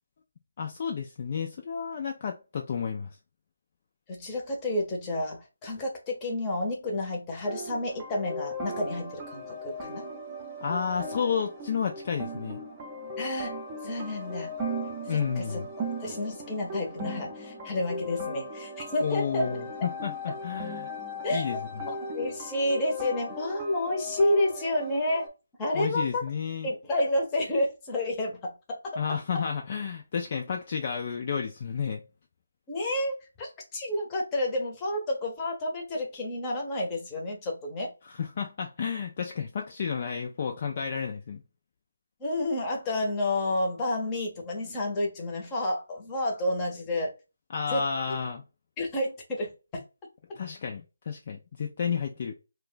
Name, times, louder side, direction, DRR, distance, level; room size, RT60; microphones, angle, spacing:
voice 1, 0.6-3.1 10.6-12.6 15.1-15.7 19.0-20.9 21.3-21.9 25.7-26.7 29.0-32.0 38.0-41.4 47.5-48.4 50.4-52.3, left 6 dB, 40° left, 0.4 m, -31 dB
voice 2, 4.1-10.0 13.2-13.6 13.8-14.5 15.1-15.6 16.0-19.5 21.2-21.5 21.9-25.2 25.6-26.2 26.6-29.0 32.7-37.9 42.2-47.1 47.7-48.1 48.8-49.8, left 1 dB, 20° left, 0.8 m, -30 dB
sound 1, 7.5-25.3, left 1 dB, 20° right, 0.6 m, -37 dB
2.4 x 2.2 x 3.8 m
figure-of-eight pair, 160°, 0 cm